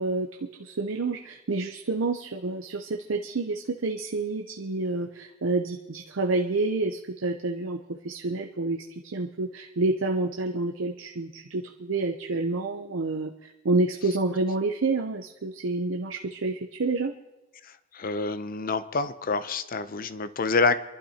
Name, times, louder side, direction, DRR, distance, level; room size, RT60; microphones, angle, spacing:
voice 1, 0.0-17.1, right 3 dB, 90° right, 4 dB, 0.7 m, -29 dB
voice 2, 17.6-20.8, left 4 dB, 45° left, 12 dB, 0.6 m, -27 dB
29.0 x 11.5 x 2.9 m, 1.1 s
head